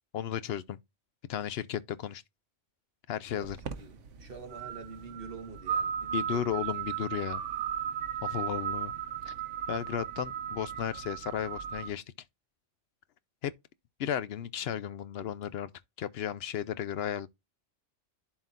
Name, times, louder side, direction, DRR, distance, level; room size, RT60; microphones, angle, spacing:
voice 1, 0.1-0.8 1.3-2.2 3.1-3.6 6.1-7.4 8.2-8.9 9.3-9.4 9.7-12.0 13.4-13.5 14.0-15.7 16.0-17.3, left 9 dB, 65° left, 0.8 m, -34 dB
voice 2, 3.3-6.5, right 4 dB, 50° right, 1.7 m, -46 dB
sound 1, 3.4-11.9, right 9 dB, 85° right, 1.2 m, -36 dB
11.5 x 3.9 x 2.5 m
omnidirectional pair, 1.2 m